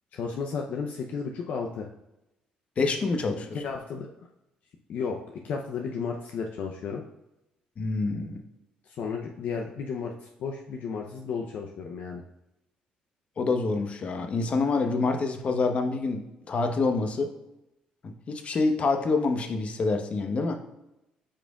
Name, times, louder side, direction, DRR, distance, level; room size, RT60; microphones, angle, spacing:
voice 1, 0.1-1.9 3.5-4.1 4.9-5.2 5.4-7.0 8.8-12.2, left 5 dB, 70° left, 2 dB, 0.6 m, -33 dB
voice 2, 2.8-3.6 7.8-8.4 13.4-16.2 16.5-17.3 18.0-20.6, left 3 dB, 45° left, 5 dB, 1.0 m, -26 dB
8.7 x 5.1 x 2.4 m, 0.90 s
supercardioid pair, 80°, 3 cm